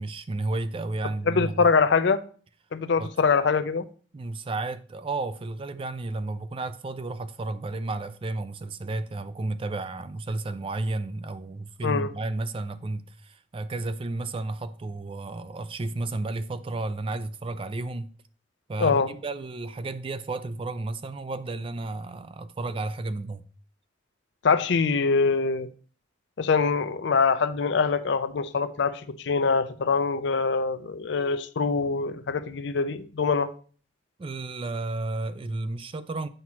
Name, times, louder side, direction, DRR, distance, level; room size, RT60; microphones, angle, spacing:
voice 1, 0.0-1.7 3.0-3.1 4.1-18.1 18.7-23.4 34.2-36.3, right 2 dB, 25° right, 0.3 m, -32 dB
voice 2, 1.3-2.2 2.7-3.9 11.8-12.1 18.8-19.1 24.4-25.7 26.4-33.5, left 5 dB, 60° left, 0.5 m, -24 dB
7.7 x 5.9 x 2.8 m
head